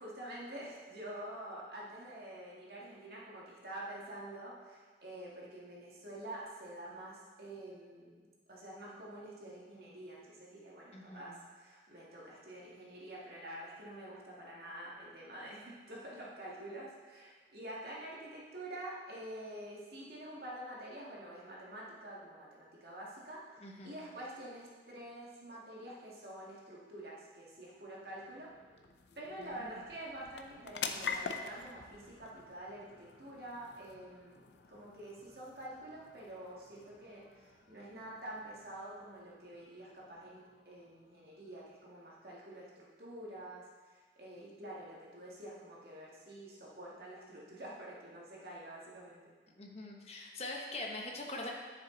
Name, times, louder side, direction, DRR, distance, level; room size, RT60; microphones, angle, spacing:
voice 1, 0.0-28.5 29.1-49.3, right 1 dB, 60° right, -5 dB, 2.1 m, -47 dB
voice 2, 10.9-11.4 23.6-24.0 29.4-29.8 49.6-51.5, left 2 dB, 35° left, 0 dB, 1.1 m, -43 dB
sound 1, 27.4-42.2, left 6 dB, 75° left, 0.6 m, -48 dB
9.8 x 7.1 x 3.9 m, 1.5 s
head